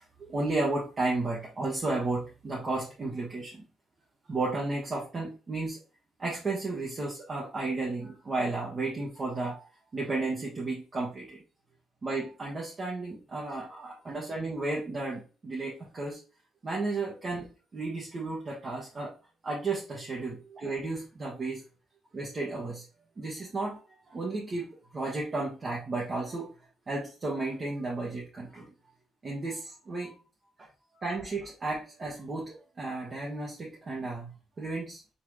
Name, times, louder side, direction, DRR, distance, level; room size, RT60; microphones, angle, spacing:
voice 1, 0.2-3.6 4.3-5.8 6.2-9.6 9.9-11.4 12.0-16.2 16.6-19.1 19.4-21.6 22.1-22.8 23.2-23.8 24.1-24.7 24.9-26.5 26.9-28.7 29.2-30.2 31.0-34.3 34.6-35.0, right 3 dB, 40° right, -4 dB, 1.3 m, -33 dB
4.1 x 3.6 x 3.1 m, 0.35 s
cardioid pair, 90°, 0 cm